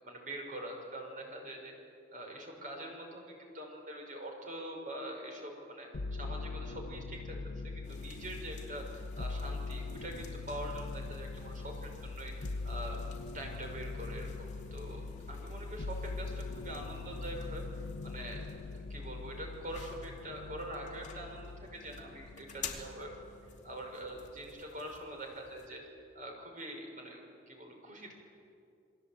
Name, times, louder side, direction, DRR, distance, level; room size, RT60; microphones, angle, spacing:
voice 1, 0.0-1.7 2.1-13.0 13.3-25.8 26.1-28.1, right 1 dB, 40° right, 1 dB, 5.8 m, -44 dB
sound 1, 5.9-23.4 23.7-24.5, left 3 dB, 75° left, 0.6 m, -42 dB
sound 2, 7.8-25.7, left 6 dB, 35° left, 2.9 m, -53 dB
29.5 x 21.5 x 8.9 m, 2.6 s
head